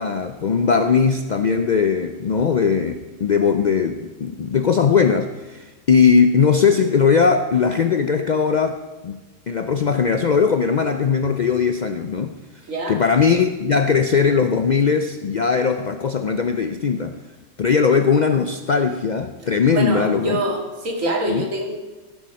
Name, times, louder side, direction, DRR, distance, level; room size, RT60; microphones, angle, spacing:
voice 1, 0.0-9.2 9.5-12.3 12.9-17.2 17.6-20.4 21.3-21.5, left 6 dB, 60° left, 7 dB, 0.4 m, -19 dB
voice 2, 12.7-13.0 19.7-21.7, right 1 dB, 85° right, 1 dB, 2.3 m, -25 dB
16.0 x 7.1 x 5.3 m, 1.2 s
omnidirectional pair, 1.3 m